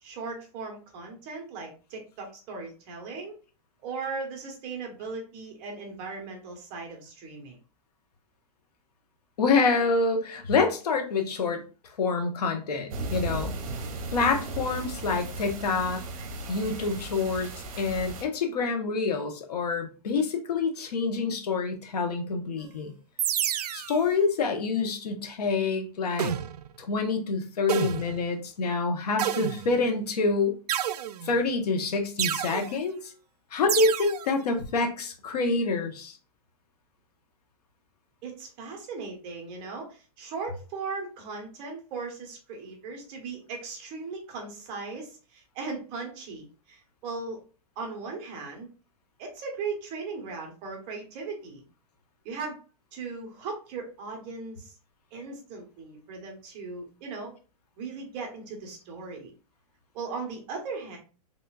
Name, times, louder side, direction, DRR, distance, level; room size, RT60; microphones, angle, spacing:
voice 1, 0.0-3.4 3.8-7.6 38.2-47.4 47.8-48.7 49.2-51.6 52.2-52.6 52.9-54.7 55.1-57.3 57.8-59.3 59.9-61.0, right 4 dB, 25° right, 2 dB, 1.0 m, -38 dB
voice 2, 9.4-11.6 12.0-13.5 14.1-16.0 16.5-17.5 17.8-22.9 23.7-26.3 26.8-30.5 31.2-33.1 33.5-36.2, left 4 dB, 80° left, 4 dB, 1.1 m, -27 dB
sound 1, 12.9-18.2, right 2 dB, 60° right, 0.9 m, -36 dB
sound 2, 23.2-24.0 26.2-26.7 27.7-28.2 29.2-29.9 30.7-31.5 32.2-32.7 33.7-34.3, right 10 dB, 85° right, 0.4 m, -30 dB
4.0 x 3.5 x 2.4 m, 0.35 s
hypercardioid pair, 165°, 20 cm